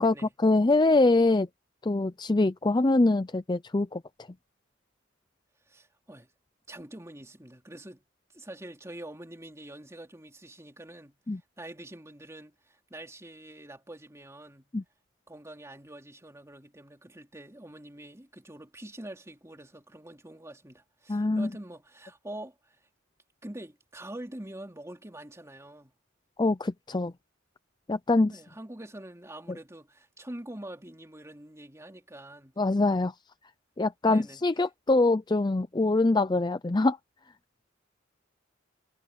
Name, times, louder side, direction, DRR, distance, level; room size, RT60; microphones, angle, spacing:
voice 1, 0.0-1.5 1.8-4.0 11.3-11.4 14.7-14.8 21.1-21.5 26.4-27.1 27.9-28.3 32.6-33.1 33.8-37.0, left 2 dB, 20° left, 0.5 m, -24 dB
voice 2, 5.7-6.3 6.7-8.1 8.3-11.2 11.6-14.7 15.3-22.8 23.4-25.9 28.3-32.6 34.1-34.4, right 1 dB, 15° right, 3.2 m, -45 dB
head